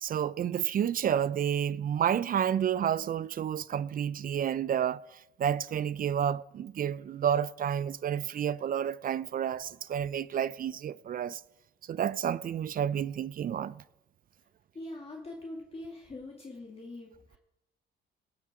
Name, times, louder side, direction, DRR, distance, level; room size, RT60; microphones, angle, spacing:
voice 1, 0.0-11.4 11.8-13.8, right 9 dB, 45° right, 0.4 m, -30 dB
voice 2, 14.7-17.4, left 2 dB, 30° left, 2.0 m, -43 dB
17.5 x 5.9 x 4.8 m
cardioid pair, 90°, 20 cm